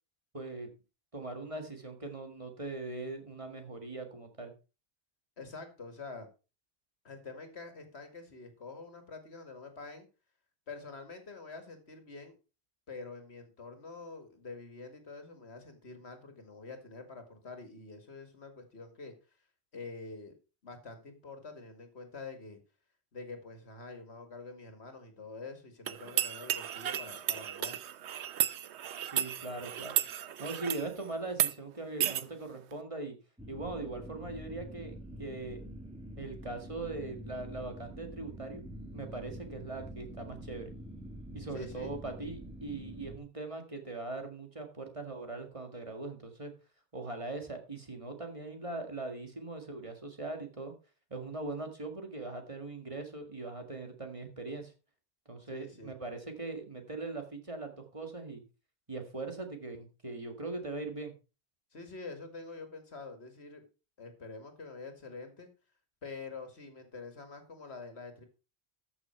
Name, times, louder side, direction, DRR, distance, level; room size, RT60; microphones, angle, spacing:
voice 1, 0.3-0.7 1.1-4.5 29.1-30.0 30.4-33.1 33.5-35.6 36.2-40.7 41.3-46.5 46.9-50.7 51.1-54.7 55.3-58.4 58.9-61.1, right 3 dB, 30° right, 5 dB, 1.9 m, -40 dB
voice 2, 5.4-6.3 7.0-10.1 10.7-12.4 12.9-19.1 19.7-20.3 20.6-22.6 23.1-27.7 41.5-41.9 55.5-55.9 61.7-63.6 64.0-65.5 66.0-68.3, left 3 dB, 80° left, 6 dB, 2.3 m, -46 dB
sound 1, 25.9-30.9 31.3-31.5 32.0-32.2, right 11 dB, 85° right, 1.0 m, -33 dB
sound 2, 33.4-43.2, equal, 5° right, 1.7 m, -46 dB
13.5 x 6.3 x 4.5 m, 0.32 s
omnidirectional pair, 1.1 m